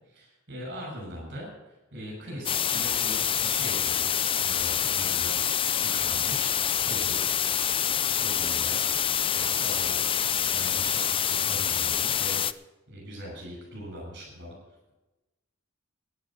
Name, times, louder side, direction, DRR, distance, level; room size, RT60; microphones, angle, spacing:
voice 1, 0.1-7.2 8.2-8.8 9.3-10.1 10.5-12.4 12.9-14.6, equal, 50° right, -1 dB, 6.3 m, -41 dB
sound 1, 2.5-12.5, left 9 dB, 25° left, 0.5 m, -26 dB
13.0 x 10.5 x 7.3 m, 1.0 s
head